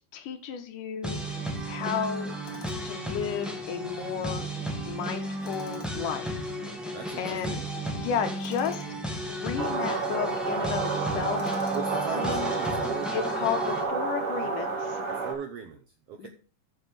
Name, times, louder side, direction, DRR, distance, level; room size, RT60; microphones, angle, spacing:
voice 1, 0.1-1.2 1.7-2.3 2.8-4.5 4.9-6.4 6.9-7.6 8.0-8.8 9.3-11.4 12.2-12.5 13.1-15.0 16.2-16.3, left 8 dB, 75° left, 6 dB, 2.6 m, -33 dB
sound 1, 1.0-13.8, equal, ahead, 0.4 m, -34 dB
Tools, 2.4-3.0 5.4-6.1 8.4-8.9 11.4-12.1, left 5 dB, 55° left, 2.4 m, -48 dB
voice 2, 6.9-7.7 11.7-13.1 15.1-16.3, right 6 dB, 75° right, 5 dB, 1.5 m, -38 dB
sound 2, 9.6-15.3, right 4 dB, 45° right, 2.9 m, -30 dB
6.8 x 6.8 x 6.8 m, 0.38 s
omnidirectional pair, 3.9 m